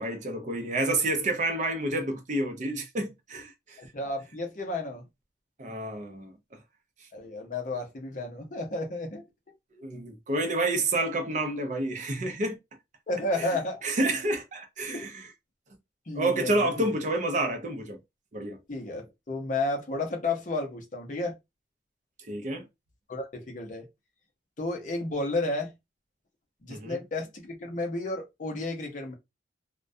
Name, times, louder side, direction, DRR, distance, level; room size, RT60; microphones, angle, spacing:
voice 1, 0.0-3.8 5.6-6.6 9.8-12.6 13.4-13.5 13.8-15.3 16.1-18.0 18.3-18.6 22.3-22.7 26.7-27.0, right 2 dB, 40° right, 0.5 m, -29 dB
voice 2, 3.8-5.0 7.1-9.2 13.1-13.8 14.9-15.1 16.1-16.9 18.7-21.4 23.1-23.9 24.6-25.7 26.6-29.1, left 2 dB, 40° left, 0.6 m, -32 dB
2.3 x 2.1 x 2.5 m
head